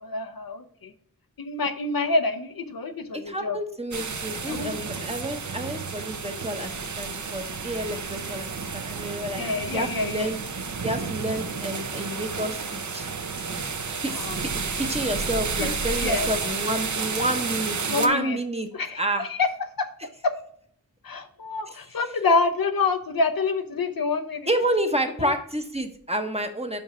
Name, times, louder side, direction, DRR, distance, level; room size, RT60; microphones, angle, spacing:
voice 1, 0.0-0.9 1.4-3.6 4.5-4.7 9.4-10.3 14.1-14.4 16.0-16.3 17.9-18.4 18.7-19.5 19.8-19.9 20.2-20.3 21.0-24.5 25.2-25.3, left 3 dB, 70° left, 9 dB, 0.7 m, -27 dB
voice 2, 3.1-6.7 7.0-10.4 10.8-13.1 14.0-18.7 18.9-19.3 21.7-21.8 24.5-26.8, right 1 dB, 15° right, 5 dB, 0.9 m, -29 dB
sound 1, 3.9-18.1, right 5 dB, 55° right, 0.7 m, -31 dB
5.5 x 5.3 x 5.0 m, 0.63 s
wide cardioid pair, 45°, 36 cm